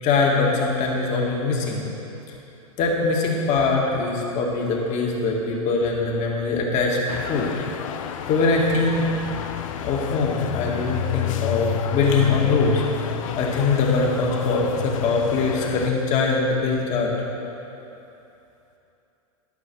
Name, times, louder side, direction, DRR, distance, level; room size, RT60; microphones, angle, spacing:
voice 1, 0.0-1.9 2.8-7.0 7.3-7.5 8.3-9.1 9.8-12.8 13.4-17.1, left 4 dB, 40° left, -1 dB, 2.0 m, -22 dB
sound 1, 7.1-15.9, left 9 dB, 65° left, 0.6 m, -29 dB
13.0 x 5.7 x 6.1 m, 2.9 s
hypercardioid pair, 105°, 18 cm